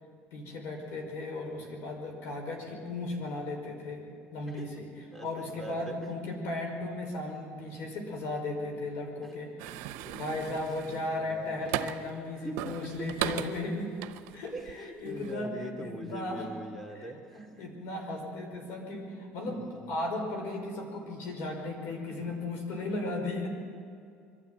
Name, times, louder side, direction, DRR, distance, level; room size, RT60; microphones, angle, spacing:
voice 1, 0.3-4.0 4.3-4.9 5.2-9.8 10.1-13.9 14.3-16.5 16.9-23.5, left 2 dB, 65° left, 3 dB, 5.1 m, -36 dB
voice 2, 5.1-6.0 9.3-9.4 10.0-10.2 10.8-12.2 12.4-13.0 14.5-17.6 19.5-20.0 22.2-22.3, right 1 dB, 5° left, 4 dB, 2.8 m, -43 dB
sound 1, 9.6-12.2 12.6-14.7 15.1-15.3, right 13 dB, 80° right, 0.8 m, -37 dB
23.0 x 12.5 x 9.4 m, 2.3 s
cardioid pair, 115°, 4 cm